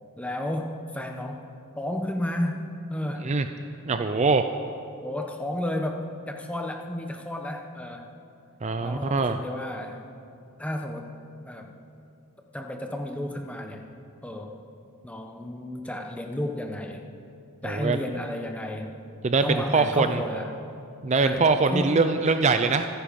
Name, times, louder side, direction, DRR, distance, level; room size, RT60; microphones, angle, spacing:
voice 1, 0.2-1.4 1.8-3.3 5.0-8.1 8.8-10.0 10.6-11.1 11.5-11.7 12.5-13.8 14.2-14.6 15.0-17.0 17.6-18.9 19.4-20.5 21.2-22.0, left 1 dB, 5° left, 3 dB, 1.0 m, -32 dB
voice 2, 3.9-4.5 8.6-9.4 17.6-18.0 19.2-20.2 21.0-22.9, right 4 dB, 30° right, 8 dB, 0.5 m, -23 dB
24.5 x 10.0 x 5.3 m, 2.6 s
head